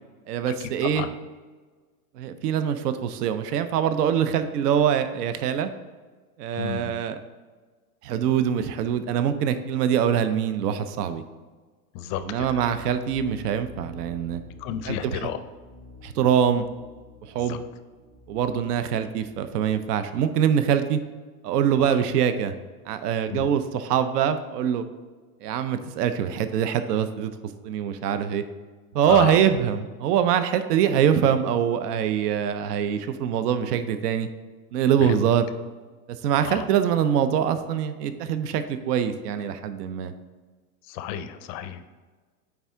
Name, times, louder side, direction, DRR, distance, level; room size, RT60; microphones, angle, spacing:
voice 1, 0.3-1.1 2.2-5.7 6.4-7.2 8.0-11.2 12.2-14.4 14.9-15.3 16.0-16.6 17.3-17.6 18.3-21.0 21.4-22.5 22.9-24.8 25.4-27.3 27.6-28.4 28.9-34.3 34.7-35.5 36.1-40.1, right 8 dB, 80° right, 10 dB, 0.7 m, -24 dB
voice 2, 6.6-7.0 11.9-12.5 14.6-15.4 17.5-17.6 23.3-23.5 29.1-29.4 35.0-35.2 36.4-36.6 40.9-41.8, left 10 dB, 35° left, 10 dB, 0.5 m, -31 dB
sound 1, 12.1-19.8, left 3 dB, 60° right, 1.3 m, -48 dB
8.8 x 3.5 x 3.6 m, 1.4 s
supercardioid pair, 125°, 46 cm